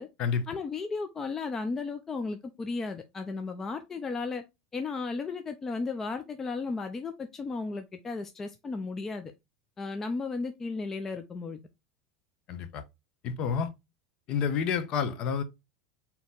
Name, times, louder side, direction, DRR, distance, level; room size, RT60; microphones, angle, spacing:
voice 1, 0.5-4.4 4.7-9.3 9.8-11.6, left 4 dB, 20° left, 0.4 m, -34 dB
voice 2, 12.5-12.8 13.2-13.7 14.3-15.4, left 6 dB, 45° left, 0.7 m, -29 dB
4.1 x 2.9 x 3.5 m
supercardioid pair, 130°, 2 cm